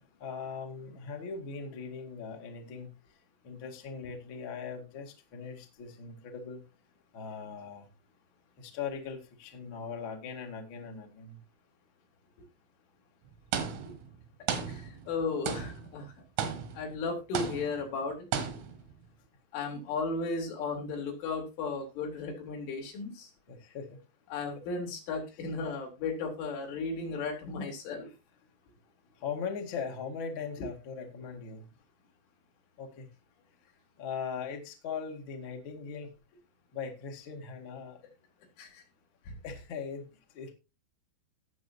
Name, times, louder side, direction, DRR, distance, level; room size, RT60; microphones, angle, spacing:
voice 1, 0.2-2.9 3.4-6.6 7.1-7.9 8.6-11.4 23.5-23.8 29.2-31.6 32.8-33.1 34.0-36.1 36.7-38.0 39.4-40.1 40.3-40.5, left 6 dB, 45° left, 3 dB, 1.6 m, -40 dB
sound 1, 13.5-14.1 14.5-15.2 15.5-16.0 16.4-17.0 17.3-17.9 18.3-18.9, right 7 dB, 85° right, 4.5 m, -35 dB
voice 2, 14.7-16.1 16.7-18.3 19.5-23.3 24.3-28.1 30.6-30.7 38.6-38.8 39.3-39.4, left 4 dB, 70° left, 1 dB, 5.4 m, -35 dB
18.0 x 7.2 x 2.8 m, 0.27 s
omnidirectional pair, 5.7 m